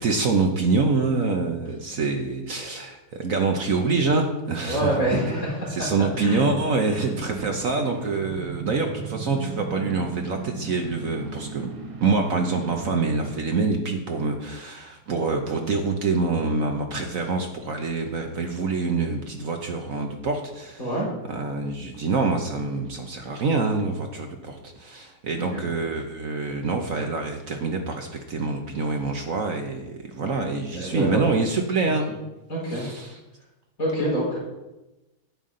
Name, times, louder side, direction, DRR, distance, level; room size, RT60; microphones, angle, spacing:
voice 1, 0.0-5.2 5.7-11.7 12.0-20.9 21.3-32.1 32.7-33.2, right 4 dB, 55° right, 4 dB, 1.0 m, -26 dB
voice 2, 4.7-5.6 6.2-6.4 6.8-7.1 20.8-21.1 25.4-25.7 30.7-31.2 32.5-32.8 33.8-34.4, right 1 dB, 40° left, -5 dB, 4.4 m, -26 dB
sound 1, 5.0-13.5, right 4 dB, 80° right, 2.5 m, -37 dB
11.0 x 9.0 x 3.8 m, 1.0 s
omnidirectional pair, 2.3 m